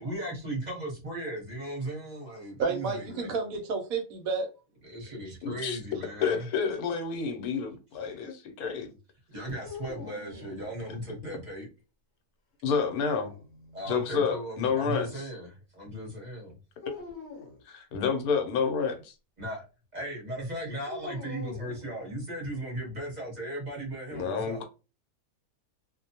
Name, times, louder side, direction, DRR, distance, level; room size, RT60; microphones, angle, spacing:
voice 1, 0.0-3.3 4.8-6.5 9.3-11.7 13.7-16.6 19.4-19.7 19.9-24.6, right 1 dB, 35° right, 0.9 m, -37 dB
voice 2, 2.6-4.5 5.0-5.1, right 4 dB, 70° right, 1.0 m, -31 dB
voice 3, 5.4-5.8 6.2-8.9 11.2-11.3 12.6-13.3 13.9-15.2 17.7-19.1 24.1-24.6, left 6 dB, 75° left, 1.1 m, -29 dB
sound 1, 9.6-11.2 12.8-14.0 16.8-17.6 20.8-22.5, left 4 dB, 55° left, 0.9 m, -45 dB
2.5 x 2.1 x 2.7 m
omnidirectional pair, 1.6 m